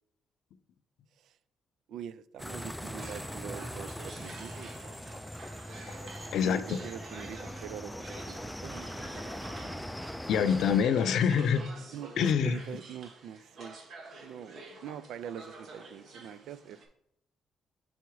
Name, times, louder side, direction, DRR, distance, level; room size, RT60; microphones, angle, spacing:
voice 1, 1.9-4.7 6.4-9.0 11.9-13.8 14.2-16.8, right 9 dB, 80° right, 0.3 m, -44 dB
sound 1, 2.4-10.8, equal, 5° left, 0.3 m, -41 dB
sound 2, 2.5-16.9, right 2 dB, 60° right, 1.3 m, -49 dB
voice 2, 6.3-6.8 10.3-11.7 12.2-12.6, left 7 dB, 75° left, 0.5 m, -25 dB
5.8 x 4.1 x 4.6 m
cardioid pair, 90°, 0 cm